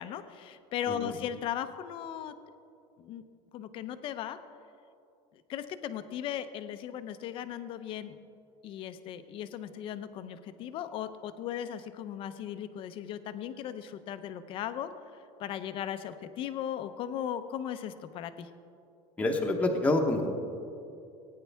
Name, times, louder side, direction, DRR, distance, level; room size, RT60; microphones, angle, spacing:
voice 1, 0.0-2.3 3.0-3.2 3.5-4.4 5.3-8.2 8.6-14.9 15.4-18.5, left 10 dB, 35° left, 11 dB, 0.5 m, -37 dB
voice 2, 0.9-1.2 19.2-20.3, left 2 dB, 10° left, 2 dB, 0.9 m, -27 dB
18.5 x 9.5 x 3.4 m, 2.6 s
cardioid pair, 170°, 15 cm